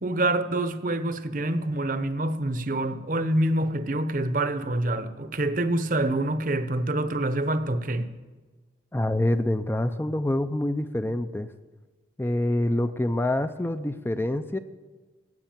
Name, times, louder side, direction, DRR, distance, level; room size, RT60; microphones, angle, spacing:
voice 1, 0.0-8.1, right 1 dB, 45° right, 0.9 m, -26 dB
voice 2, 8.9-11.5 12.2-14.6, left 1 dB, 10° left, 0.4 m, -26 dB
16.0 x 8.1 x 8.9 m
head